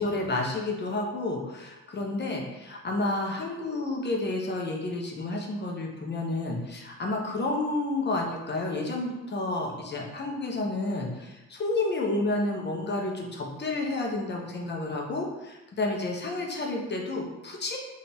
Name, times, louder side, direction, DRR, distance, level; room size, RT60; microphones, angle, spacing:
voice 1, 0.0-17.8, left 2 dB, 35° left, 0 dB, 0.9 m, -30 dB
4.3 x 2.7 x 3.5 m, 1.0 s
cardioid pair, 90°, 30 cm